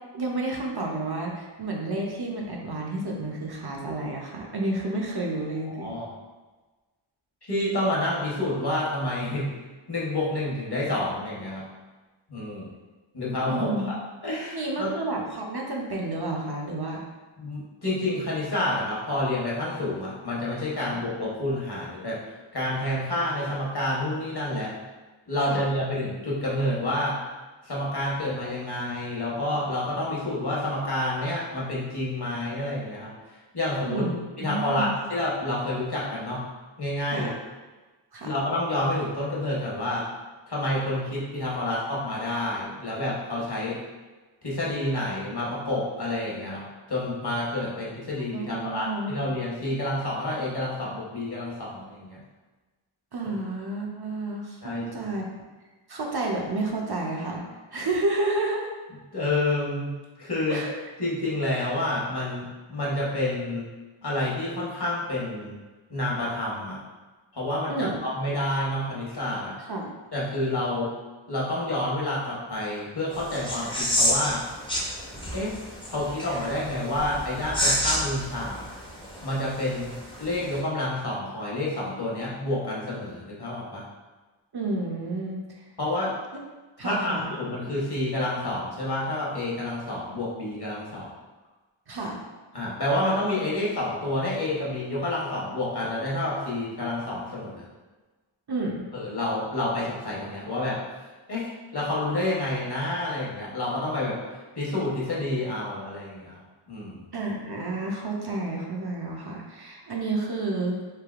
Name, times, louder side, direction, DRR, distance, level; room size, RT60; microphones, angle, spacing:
voice 1, 0.1-5.9 13.5-13.9 14.5-17.0 20.8-21.0 25.5-25.6 33.9-35.0 37.1-37.3 38.1-38.3 48.3-49.1 53.1-55.2 55.9-57.4 57.7-58.7 60.5-60.7 67.7-68.0 69.6-69.9 84.5-85.4 86.8-87.3 91.9-92.2 98.5-98.8 107.1-110.8, right 2 dB, 50° right, -1 dB, 0.5 m, -30 dB
voice 2, 5.7-6.1 7.5-9.5 9.9-11.6 12.3-12.7 13.1-14.0 14.2-15.0 17.4-22.2 22.5-24.8 25.3-27.2 27.6-33.1 33.5-34.1 34.4-36.4 36.8-37.3 38.2-40.1 40.5-43.8 44.4-52.2 53.2-53.3 54.6-55.1 59.1-59.9 60.2-60.6 61.0-63.7 64.0-65.6 65.9-66.8 67.3-69.6 70.1-70.9 71.3-74.4 75.3-75.6 75.9-78.7 79.2-83.8 85.8-86.1 86.8-91.1 92.5-97.7 98.9-100.8 101.3-104.2 104.6-106.4 106.7-107.1, left 1 dB, 50° left, -5 dB, 1.0 m, -29 dB
sound 1, 73.1-80.6, equal, 10° left, 0.5 m, -30 dB
3.3 x 2.7 x 2.3 m, 1.2 s
wide cardioid pair, 45°, 50 cm